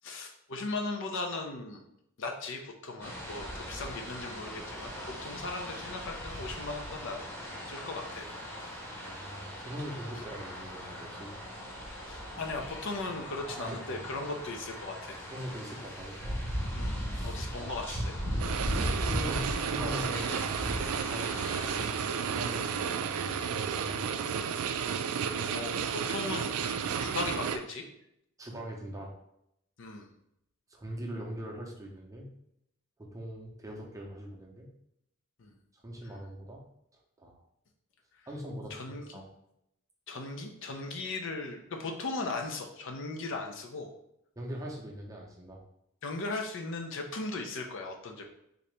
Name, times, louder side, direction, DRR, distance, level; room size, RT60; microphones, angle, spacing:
voice 1, 0.0-1.8 2.2-7.2 7.7-8.3 12.1-15.2 16.7-18.1 25.5-27.9 29.8-30.1 35.4-35.5 38.7-39.2 40.1-43.9 46.0-48.3, left 3 dB, 60° left, 3 dB, 0.6 m, -38 dB
sound 1, 3.0-21.9, equal, 10° left, 0.9 m, -38 dB
voice 2, 9.0-11.3 13.4-14.1 15.3-16.5 17.1-17.7 19.0-20.4 21.0-24.4 28.4-29.1 30.7-32.3 33.0-34.7 35.8-36.6 37.2-37.4 38.3-38.8 39.1-39.3 44.4-45.6, right 1 dB, 15° right, -1 dB, 0.7 m, -42 dB
sound 2, 18.4-27.6, right 7 dB, 80° right, 0.3 m, -32 dB
3.9 x 2.8 x 3.3 m, 0.77 s
head